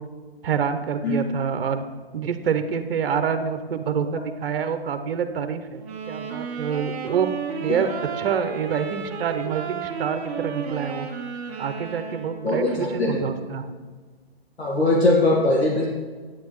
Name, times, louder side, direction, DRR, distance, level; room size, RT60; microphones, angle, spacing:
voice 1, 0.4-7.3 7.6-7.9 8.2-11.1 11.6-13.7, right 7 dB, 65° right, 9 dB, 0.7 m, -27 dB
sound 1, 5.8-12.6, right 6 dB, 20° right, 0.7 m, -33 dB
voice 2, 14.6-15.9, left 2 dB, 85° left, -2 dB, 1.7 m, -20 dB
10.0 x 9.0 x 3.1 m, 1.4 s
hypercardioid pair, 135°, 31 cm